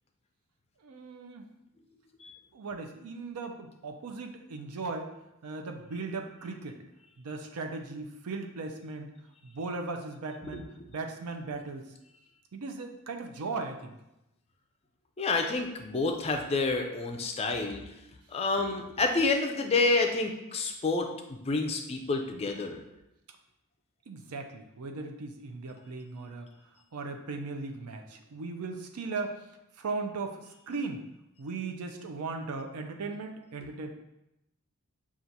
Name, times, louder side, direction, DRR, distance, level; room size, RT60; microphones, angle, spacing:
voice 1, 0.8-1.5 2.5-5.1 5.4-6.8 7.2-9.1 9.4-11.9 12.5-14.0 24.1-26.5 26.9-29.4 29.8-31.0 31.4-33.9, right 3 dB, 90° right, 4 dB, 0.5 m, -37 dB
voice 2, 15.2-17.8 18.3-21.1 21.5-22.8, left 3 dB, 25° left, 3 dB, 0.3 m, -28 dB
5.8 x 2.4 x 2.7 m, 0.89 s
head